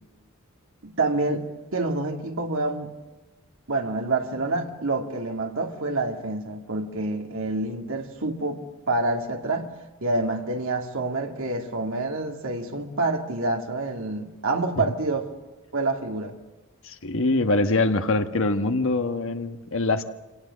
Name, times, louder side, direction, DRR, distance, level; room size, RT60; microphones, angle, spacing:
voice 1, 0.8-2.9 3.7-9.7 10.0-15.3 15.7-16.4, right 2 dB, 60° right, 2.2 m, -27 dB
voice 2, 16.8-20.0, left 2 dB, 60° left, 1.4 m, -24 dB
25.5 x 18.0 x 7.5 m
head